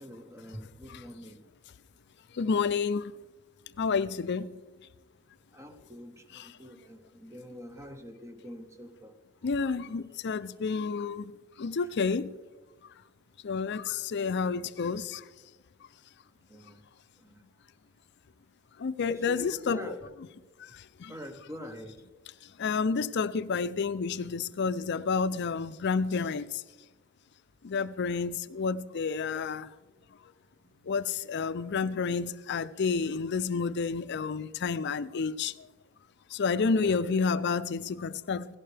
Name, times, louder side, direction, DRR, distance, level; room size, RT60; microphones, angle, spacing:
voice 1, 0.0-1.5 5.5-9.2 16.5-16.8 17.2-17.4 19.1-20.1 21.1-22.0 30.6-30.9 36.7-37.0, left 1 dB, 15° right, 1.0 m, -45 dB
voice 2, 2.4-3.1 3.8-4.5 6.3-6.5 9.4-11.3 11.6-12.3 13.4-15.2 18.8-20.0 20.6-20.7 21.0-21.1 22.6-26.5 27.6-29.7 30.9-35.5 36.3-38.5, left 5 dB, 55° left, 0.5 m, -30 dB
17.5 x 16.0 x 3.4 m
head